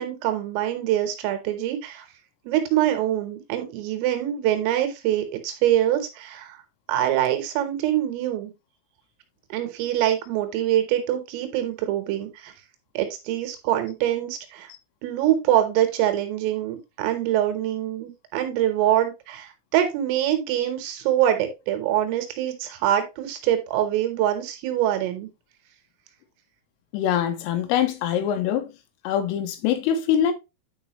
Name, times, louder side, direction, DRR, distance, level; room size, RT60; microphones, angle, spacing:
voice 1, 0.0-2.1 2.5-6.6 6.9-8.5 9.5-12.5 13.0-14.7 15.0-25.3, right 12 dB, 80° right, 3.6 m, -24 dB
voice 2, 26.9-28.7 29.1-30.3, left 9 dB, 85° left, 3.5 m, -23 dB
9.5 x 5.0 x 3.0 m
omnidirectional pair, 6.0 m